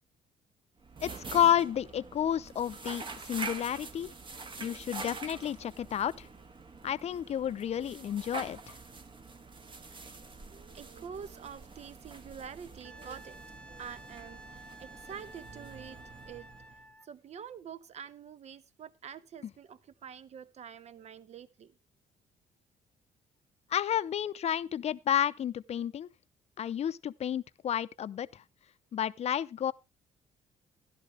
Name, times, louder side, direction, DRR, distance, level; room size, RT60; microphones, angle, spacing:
sound 1, 0.8-16.9, right 4 dB, 35° right, 1.5 m, -46 dB
voice 1, 1.0-4.1 4.6-6.3 6.8-8.6 23.7-26.1 26.6-28.4 28.9-29.7, left 10 dB, 50° left, 0.6 m, -31 dB
voice 2, 10.5-13.4 13.8-16.0 16.3-16.5 17.0-21.7, right 7 dB, 50° right, 0.9 m, -46 dB
Wind instrument woodwind instrument, 12.8-17.1 19.8-19.9, right 1 dB, 5° left, 0.7 m, -52 dB
13.0 x 11.0 x 3.3 m
cardioid pair, 80°, 14 cm